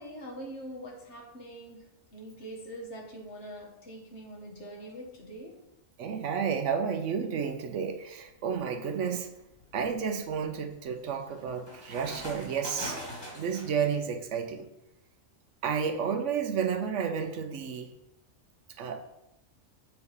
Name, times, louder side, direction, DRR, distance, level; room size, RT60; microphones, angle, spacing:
voice 1, 0.0-1.9 2.1-5.6, right 1 dB, 60° left, 0 dB, 1.8 m, -43 dB
voice 2, 6.0-9.3 9.7-13.0 13.3-14.7 15.6-17.9 18.8-19.0, right 6 dB, 70° right, 8 dB, 1.0 m, -31 dB
sound 1, 8.3-8.6 9.2-13.8, equal, 20° left, 2.2 m, -43 dB
7.0 x 4.6 x 5.4 m, 0.87 s
omnidirectional pair, 1.4 m